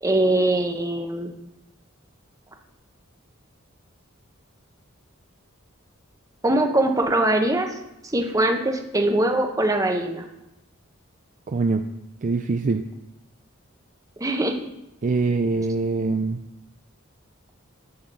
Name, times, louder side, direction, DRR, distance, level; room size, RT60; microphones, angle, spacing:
voice 1, 0.0-1.3 6.4-7.7 8.1-10.2 14.2-14.6, right 1 dB, 15° right, 3 dB, 0.9 m, -22 dB
voice 2, 11.5-11.8 12.2-12.8 15.0-16.4, right 3 dB, 40° right, 6 dB, 0.4 m, -23 dB
11.5 x 3.9 x 6.7 m, 0.89 s
head